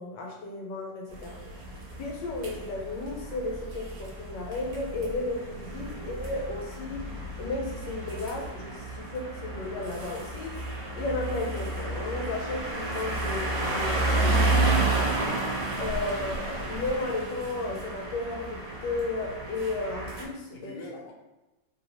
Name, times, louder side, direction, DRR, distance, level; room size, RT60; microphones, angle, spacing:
voice 1, 0.0-1.7 2.0-7.1 7.4-10.6 11.0-15.4 15.8-20.7, left 2 dB, 85° left, 0 dB, 1.2 m, -34 dB
sound 1, 1.1-20.2, right 2 dB, 60° right, 1.1 m, -31 dB
voice 2, 5.8-6.1 16.1-16.6 20.5-21.1, left 2 dB, 60° left, -2 dB, 1.0 m, -44 dB
3.0 x 2.7 x 2.8 m, 1.0 s
omnidirectional pair, 1.9 m